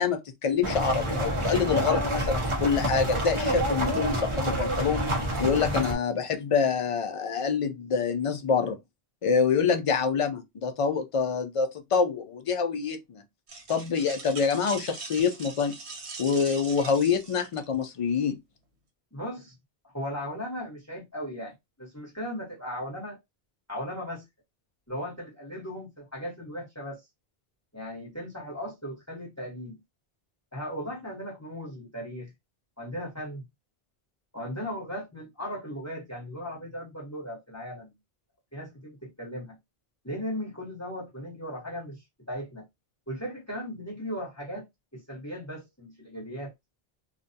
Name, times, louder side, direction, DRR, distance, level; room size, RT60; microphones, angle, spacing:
voice 1, 0.0-5.1 5.4-8.8 9.2-13.2 13.7-15.7 16.2-18.4, left 6 dB, 55° left, 0.3 m, -26 dB
sound 1, 0.6-5.9, equal, 35° right, 0.6 m, -28 dB
sound 2, 13.5-17.9, right 4 dB, 85° right, 1.0 m, -41 dB
voice 2, 19.1-19.5 19.8-23.2 23.7-24.2 24.9-27.1 27.7-29.8 30.5-32.3 32.8-33.4 34.3-37.9 38.5-39.6 40.0-42.6 43.1-44.7 44.9-46.5, equal, 15° left, 1.0 m, -37 dB
2.4 x 2.1 x 2.6 m
omnidirectional pair, 1.1 m